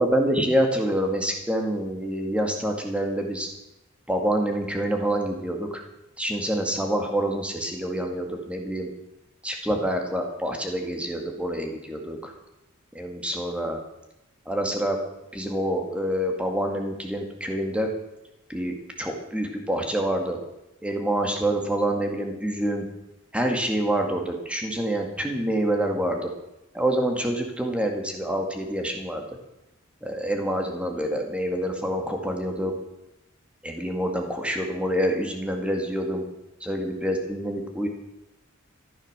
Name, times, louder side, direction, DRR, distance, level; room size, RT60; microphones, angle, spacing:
voice 1, 0.0-3.5 4.1-5.8 6.2-8.9 9.4-12.3 12.9-13.8 14.5-15.0 15.3-17.9 18.5-20.4 20.8-22.9 23.3-26.3 26.7-29.2 30.0-32.7 33.6-36.2 36.6-37.9, right 1 dB, 5° right, 3 dB, 2.0 m, -27 dB
14.5 x 10.5 x 6.6 m, 0.92 s
head